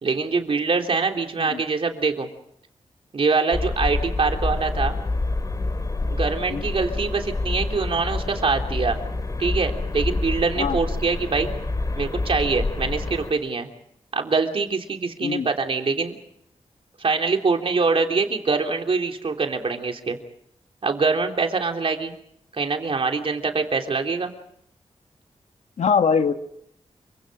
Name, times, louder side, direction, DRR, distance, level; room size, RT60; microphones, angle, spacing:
voice 1, 0.0-2.3 3.1-5.0 6.1-9.0 9.4-11.5 12.0-13.7 14.1-16.2 17.0-20.2 20.8-22.1 22.5-24.3, right 4 dB, 55° right, 4 dB, 3.4 m, -24 dB
sound 1, 3.5-13.3, left 2 dB, 30° left, 3.4 m, -27 dB
voice 2, 25.8-26.3, left 6 dB, 80° left, 7 dB, 1.6 m, -22 dB
29.0 x 25.0 x 5.1 m, 0.71 s
wide cardioid pair, 105°, 12 cm